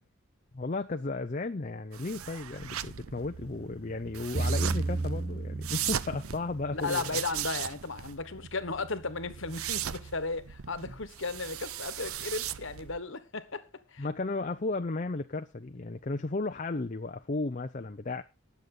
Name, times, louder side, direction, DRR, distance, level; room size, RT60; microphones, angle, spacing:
voice 1, 0.5-7.2 14.0-18.2, left 3 dB, 35° left, 0.5 m, -34 dB
sound 1, 1.9-13.0, right 10 dB, 70° right, 0.6 m, -38 dB
sound 2, 4.4-6.8, right 3 dB, 30° right, 0.6 m, -32 dB
voice 2, 6.7-13.6 13.9-14.1, left 3 dB, 55° left, 1.3 m, -35 dB
19.0 x 6.9 x 3.8 m
head